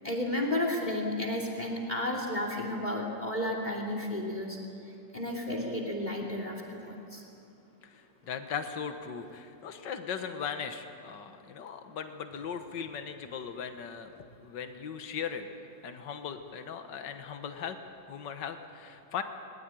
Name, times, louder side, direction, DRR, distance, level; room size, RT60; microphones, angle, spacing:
voice 1, 0.0-4.6 5.1-7.2, left 1 dB, 25° left, 1 dB, 2.9 m, -32 dB
voice 2, 7.8-15.5 15.8-17.8 18.1-19.2, left 7 dB, 75° left, 7 dB, 1.9 m, -38 dB
21.0 x 20.5 x 9.1 m, 2.6 s
omnidirectional pair, 1.9 m